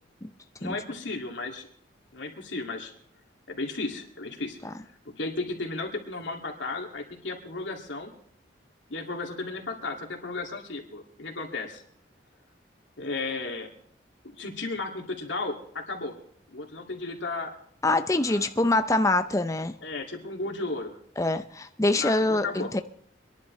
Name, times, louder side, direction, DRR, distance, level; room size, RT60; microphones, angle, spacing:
voice 1, 0.6-1.7 2.1-2.9 3.5-4.6 5.2-8.1 8.9-11.8 13.0-13.7 14.2-16.2 16.5-17.5 18.2-18.5 19.8-20.9 22.0-22.7, left 3 dB, 80° left, 2.3 m, -34 dB
voice 2, 17.8-19.8 21.2-22.8, left 2 dB, 15° left, 0.6 m, -24 dB
25.5 x 11.0 x 3.2 m
head